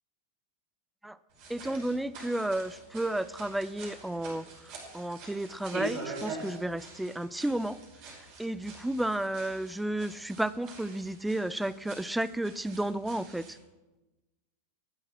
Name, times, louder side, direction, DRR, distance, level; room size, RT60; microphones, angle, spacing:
sound 1, 1.3-13.6, right 3 dB, 45° right, 5.4 m, -45 dB
voice 1, 1.5-7.8 8.2-13.6, right 1 dB, 5° right, 18 dB, 0.4 m, -32 dB
14.0 x 11.0 x 6.1 m, 1.1 s
figure-of-eight pair, 90°, 0 cm